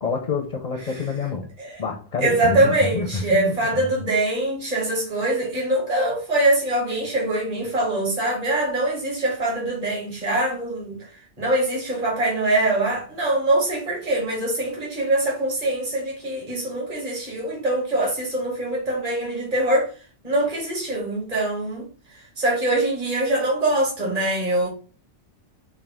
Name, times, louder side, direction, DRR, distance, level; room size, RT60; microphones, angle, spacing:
voice 1, 0.0-1.5 1.8-4.0, left 4 dB, 45° left, 0.6 m, -28 dB
voice 2, 2.2-11.0 11.4-19.9 20.2-21.8 22.1-24.7, right 1 dB, 30° right, 1.5 m, -23 dB
4.5 x 2.3 x 3.5 m
omnidirectional pair, 1.3 m